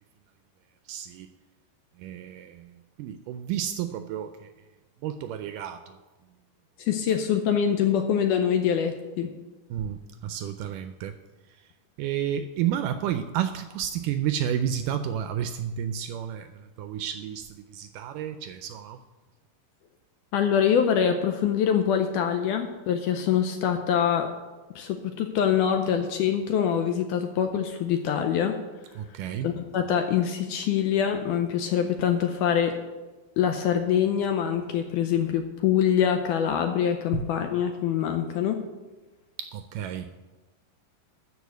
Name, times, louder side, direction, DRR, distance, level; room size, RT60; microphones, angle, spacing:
voice 1, 0.9-1.3 2.0-4.5 5.0-6.0 9.7-11.2 12.0-19.0 29.0-29.5 39.4-40.2, right 10 dB, 80° right, 9 dB, 1.9 m, -31 dB
voice 2, 6.8-9.3 20.3-24.3 24.8-28.6 29.4-32.8 33.4-38.6, left 8 dB, 80° left, 6 dB, 1.9 m, -24 dB
13.0 x 4.9 x 8.0 m, 1.2 s
omnidirectional pair, 4.2 m